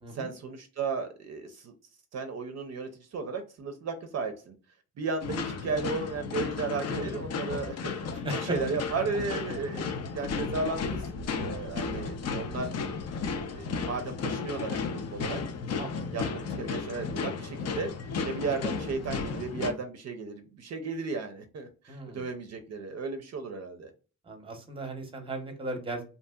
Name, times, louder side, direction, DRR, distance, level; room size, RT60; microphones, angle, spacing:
voice 1, 0.1-1.7 2.1-4.5 5.0-12.7 13.4-15.4 16.1-17.9 18.2-23.9, right 4 dB, 55° right, 6 dB, 0.5 m, -35 dB
sound 1, 5.2-19.7, left 5 dB, 55° left, 0.5 m, -34 dB
voice 2, 8.1-8.6 15.8-16.1 21.9-22.2 24.2-26.0, right 2 dB, 15° right, 5 dB, 0.7 m, -37 dB
2.6 x 2.6 x 2.2 m, 0.35 s
wide cardioid pair, 135°, 32 cm